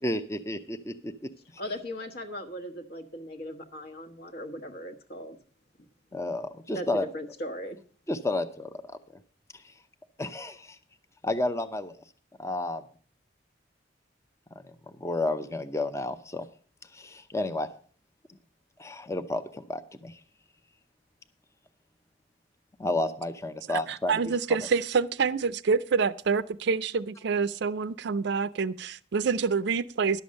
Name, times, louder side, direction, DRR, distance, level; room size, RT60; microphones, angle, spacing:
voice 1, 0.0-1.1 6.1-7.1 8.1-9.0 9.6-9.7 10.2-10.8 11.2-12.0 12.4-12.8 14.6-14.7 15.0-16.5 16.9-17.7 18.8-20.2 22.8-24.2, left 2 dB, 15° left, 10 dB, 0.6 m, -31 dB
voice 2, 1.6-5.4 6.7-7.8, equal, 55° left, 6 dB, 1.3 m, -38 dB
voice 3, 23.7-30.2, right 5 dB, 65° right, 16 dB, 0.5 m, -27 dB
11.5 x 7.1 x 6.4 m, 0.43 s
head